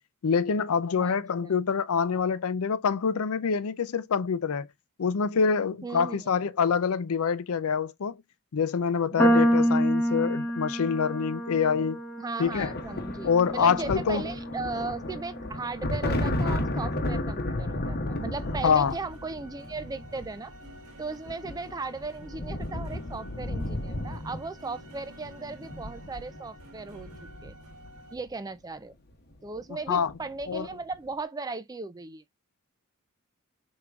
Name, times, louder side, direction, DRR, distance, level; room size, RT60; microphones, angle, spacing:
voice 1, 0.2-4.7 5.0-8.2 8.5-12.0 12.4-12.7 13.3-14.3 18.6-19.0 29.9-30.1 30.5-30.7, left 6 dB, 70° left, 0.5 m, -26 dB
voice 2, 1.0-1.6 5.8-6.3 9.1-9.5 12.2-20.5 21.0-27.1 27.4-27.5 28.1-28.9 29.4-32.2, right 3 dB, 15° right, 0.4 m, -37 dB
sound 1, 9.2-15.5, equal, 5° left, 0.8 m, -28 dB
sound 2, 12.4-28.2 29.4-29.6 29.9-30.6, left 1 dB, 45° left, 1.0 m, -34 dB
sound 3, 18.3-28.1, right 1 dB, 90° right, 1.8 m, -51 dB
4.6 x 3.7 x 2.3 m
head